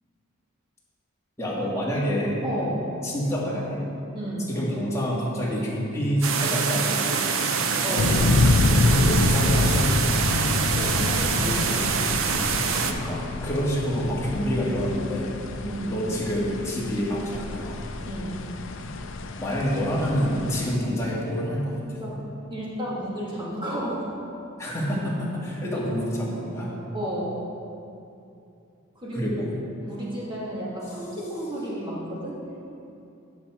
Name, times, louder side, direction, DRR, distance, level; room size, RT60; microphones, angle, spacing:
voice 1, 1.4-2.4 3.0-3.8 4.5-7.4 7.9-8.0 8.9-9.9 12.7-15.3 15.9-17.8 18.8-18.9 19.4-22.0 24.6-26.7 29.1-29.6, equal, 15° left, -7 dB, 1.8 m, -27 dB
voice 2, 2.4-2.8 4.1-4.5 7.8-8.1 10.4-11.9 12.2-12.3 15.6-15.9 18.0-18.5 21.8-22.2 22.5-24.1 26.9-27.4 29.0-29.2 29.9-32.4, right 1 dB, 25° right, -6 dB, 2.0 m, -32 dB
sound 1, 6.2-12.9, right 6 dB, 75° right, 0.6 m, -25 dB
sound 2, 8.0-20.8, left 2 dB, 65° left, 0.5 m, -26 dB
10.5 x 6.2 x 4.4 m, 2.7 s
head